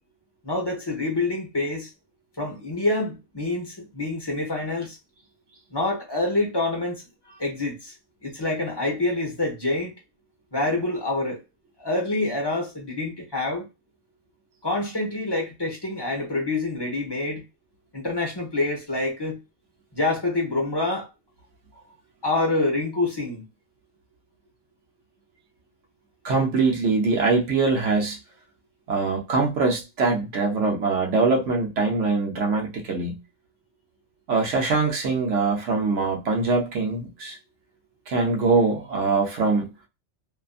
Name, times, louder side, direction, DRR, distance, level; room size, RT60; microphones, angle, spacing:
voice 1, 0.4-1.9 2.4-5.0 5.7-7.9 8.2-10.0 10.5-11.4 11.8-13.7 14.6-17.4 17.9-19.4 19.9-21.1 22.2-23.5, left 2 dB, 25° left, 0.7 m, -26 dB
voice 2, 26.2-28.2 28.9-33.2 34.3-37.4 38.1-39.7, right 3 dB, 80° right, 1.1 m, -23 dB
2.7 x 2.5 x 2.4 m
omnidirectional pair, 1.2 m